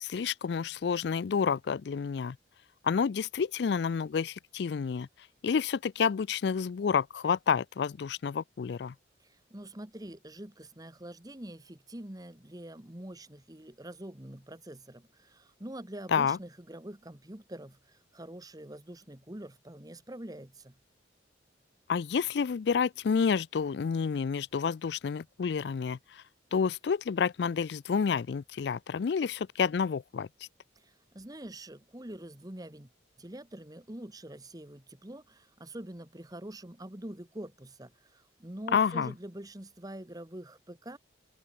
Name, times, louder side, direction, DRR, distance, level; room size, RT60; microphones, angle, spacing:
voice 1, 0.0-2.4 2.8-5.1 5.4-8.9 16.1-16.4 21.9-26.2 26.5-30.3 38.7-39.1, left 6 dB, 60° left, 0.4 m, -29 dB
voice 2, 9.2-20.7 30.8-32.9 33.2-41.0, right 1 dB, 20° right, 1.5 m, -45 dB
open air
head